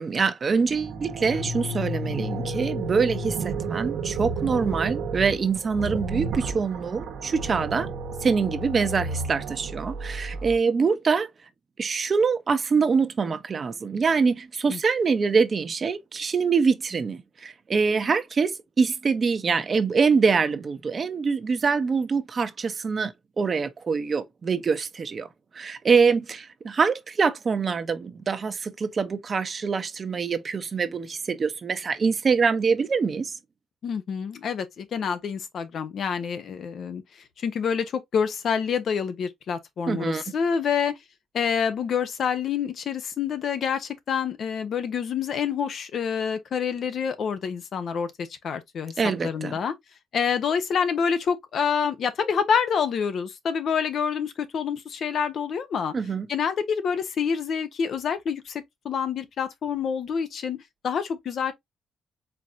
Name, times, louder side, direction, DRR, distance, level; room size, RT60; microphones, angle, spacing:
voice 1, 0.0-7.9 8.2-11.3 11.8-25.3 25.5-33.4 39.9-40.2 49.0-49.6 55.9-56.3, right 5 dB, 40° right, 0.8 m, -24 dB
sound 1, 0.6-10.6, right 3 dB, 80° right, 1.3 m, -32 dB
voice 2, 33.8-37.0 37.4-40.9 41.3-48.9 49.2-49.7 50.1-55.9 56.3-61.5, left 7 dB, 60° left, 0.9 m, -27 dB
4.6 x 3.7 x 2.7 m
cardioid pair, 90°, 0 cm